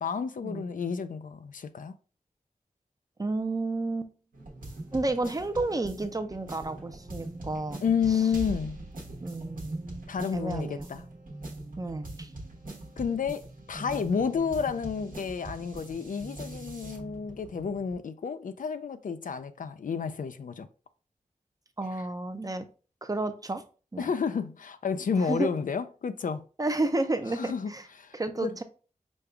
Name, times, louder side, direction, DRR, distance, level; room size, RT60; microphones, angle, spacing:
voice 1, 0.0-1.9 7.8-8.8 10.1-11.0 13.0-13.4 13.7-20.7 24.0-26.4 27.3-28.6, left 6 dB, 75° left, 0.4 m, -30 dB
voice 2, 3.2-4.1 4.9-7.8 9.2-9.9 10.3-10.9 11.8-12.3 21.8-22.7 23.0-23.6 23.9-24.1 25.2-25.5 26.6-27.8 28.1-28.6, right 2 dB, 25° right, 0.5 m, -31 dB
sound 1, 4.3-18.0, right 2 dB, 85° right, 1.1 m, -42 dB
5.2 x 2.3 x 3.4 m
wide cardioid pair, 90°, 14 cm